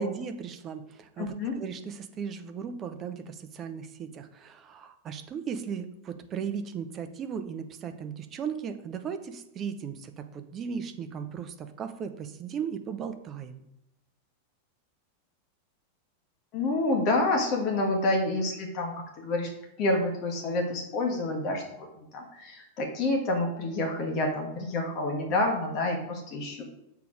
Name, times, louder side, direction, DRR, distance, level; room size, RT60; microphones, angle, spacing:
voice 1, 0.0-13.7, right 7 dB, 30° right, 8 dB, 0.7 m, -37 dB
voice 2, 1.2-1.6 16.5-19.5 19.8-26.6, left 2 dB, 40° left, 2 dB, 1.5 m, -28 dB
6.9 x 4.7 x 5.0 m, 0.83 s
figure-of-eight pair, 90°, 0 cm